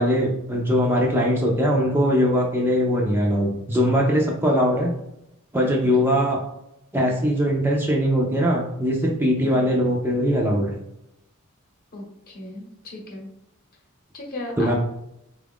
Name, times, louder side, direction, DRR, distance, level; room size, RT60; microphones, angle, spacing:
voice 1, 0.0-4.9 5.5-6.4 6.9-10.7 14.6-14.8, equal, 10° right, -2 dB, 0.4 m, -21 dB
voice 2, 11.9-13.3 14.1-14.8, left 2 dB, 40° left, -1 dB, 0.9 m, -36 dB
4.0 x 2.4 x 3.5 m, 0.82 s
head